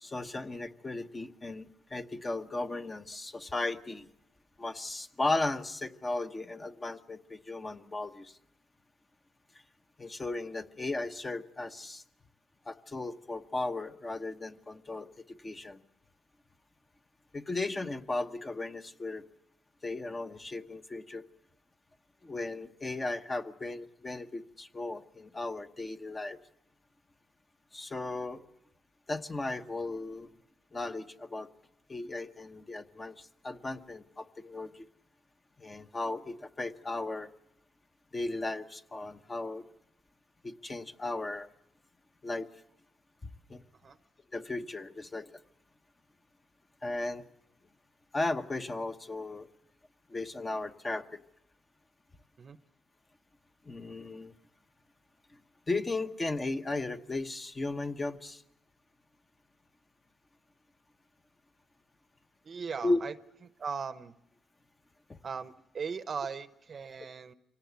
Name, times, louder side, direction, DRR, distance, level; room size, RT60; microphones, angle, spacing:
voice 1, 0.0-4.1 4.6-8.4 10.0-12.0 12.7-15.8 17.3-19.2 19.8-21.2 22.2-26.4 27.7-28.5 29.1-30.3 30.7-31.5 31.9-34.9 35.6-37.3 38.1-39.7 40.4-41.5 42.2-42.5 43.2-43.6 44.3-45.3 46.8-47.3 48.1-49.5 50.1-51.2 53.6-54.3 55.7-58.4 62.8-63.0 65.1-65.2, left 2 dB, 25° left, 7 dB, 1.0 m, -36 dB
voice 2, 62.4-63.1 63.6-64.2 65.2-67.3, right 6 dB, 45° right, 13 dB, 0.8 m, -38 dB
24.5 x 18.0 x 8.2 m, 0.83 s
cardioid pair, 90°, 0 cm